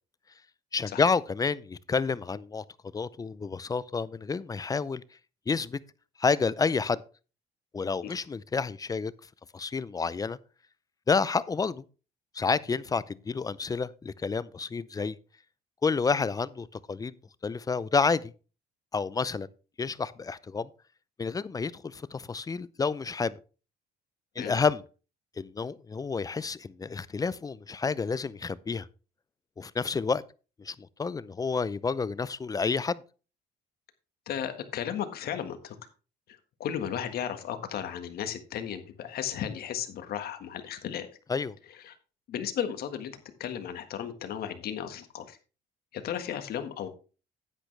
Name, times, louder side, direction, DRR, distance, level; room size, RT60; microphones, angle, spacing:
voice 1, 0.7-2.6 2.9-5.0 5.5-5.8 6.2-7.0 7.7-9.1 9.5-10.4 11.1-11.8 12.3-15.2 15.8-17.1 17.4-18.3 18.9-19.5 19.8-20.7 21.2-23.3 24.4-24.8 25.4-28.9 29.6-30.2 30.6-33.0 41.3-41.5, left 5 dB, 20° left, 0.5 m, -29 dB
voice 2, 34.3-35.8 36.6-41.1 41.8-41.9 42.3-43.1 43.4-45.4 45.9-46.9, left 9 dB, 60° left, 1.6 m, -34 dB
9.9 x 8.9 x 3.3 m
cardioid pair, 95°, 18 cm